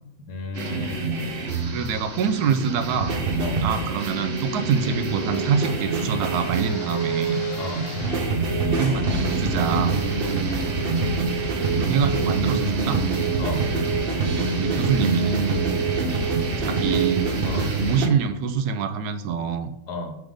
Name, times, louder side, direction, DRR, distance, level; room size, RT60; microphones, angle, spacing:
voice 1, 0.3-1.1 3.4-3.6 7.6-7.8 10.2-10.5 13.4-13.6 17.4-17.7 19.9-20.2, left 2 dB, 75° left, 4 dB, 1.5 m, -33 dB
sound 1, 0.5-18.1, right 3 dB, 45° right, 0.8 m, -26 dB
voice 2, 1.7-3.1 3.6-7.4 8.7-10.0 11.7-13.0 14.6-15.4 16.6-17.3 17.8-19.7, right 6 dB, 80° right, 10 dB, 1.1 m, -25 dB
sound 2, 4.0-8.5 8.8-13.6 14.0-14.1, left 3 dB, 50° left, 0.8 m, -40 dB
sound 3, 4.8-17.3, right 7 dB, 15° left, 1.0 m, -32 dB
6.2 x 3.6 x 5.1 m, 0.85 s
omnidirectional pair, 1.7 m